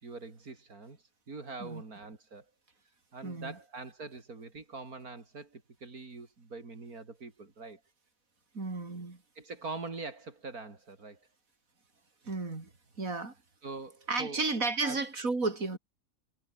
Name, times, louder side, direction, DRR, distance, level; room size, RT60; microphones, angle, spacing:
voice 1, 0.0-1.0 1.3-2.5 3.1-7.8 9.4-11.2 13.6-14.4 14.7-15.0, right 3 dB, 85° right, 4.0 m, -43 dB
voice 2, 3.2-3.5 8.5-9.2 12.3-12.7 13.0-13.3 14.1-15.8, right 3 dB, 70° right, 4.4 m, -33 dB
omnidirectional pair, 1.5 m